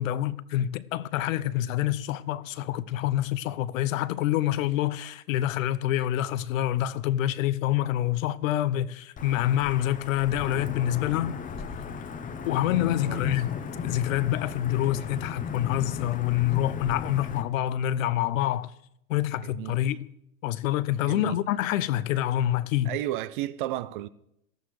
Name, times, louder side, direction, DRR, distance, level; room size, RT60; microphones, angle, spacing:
voice 1, 0.0-11.4 12.5-13.6 13.8-18.7 19.1-20.0 20.4-22.9, left 13 dB, 60° left, 0.8 m, -27 dB
Wind / Thunder / Rain, 9.2-17.4, left 6 dB, 20° left, 0.8 m, -36 dB
voice 2, 21.0-21.4 22.8-24.1, right 14 dB, 40° right, 0.4 m, -32 dB
18.5 x 14.0 x 3.2 m
hypercardioid pair, 120°, 45 cm